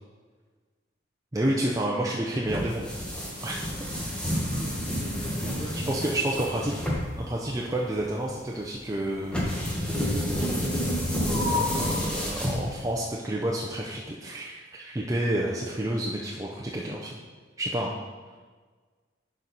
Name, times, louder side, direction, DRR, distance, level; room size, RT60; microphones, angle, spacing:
voice 1, 1.3-2.9 3.4-4.0 5.9-6.8 7.2-9.6 11.5-17.2 17.6-18.0, right 1 dB, 20° right, -3 dB, 0.5 m, -30 dB
sound 1, 2.4-13.0, equal, 5° left, 1.2 m, -29 dB
voice 2, 4.3-6.0, right 1 dB, 50° right, -3 dB, 2.1 m, -40 dB
11.0 x 4.3 x 4.0 m, 1.4 s
head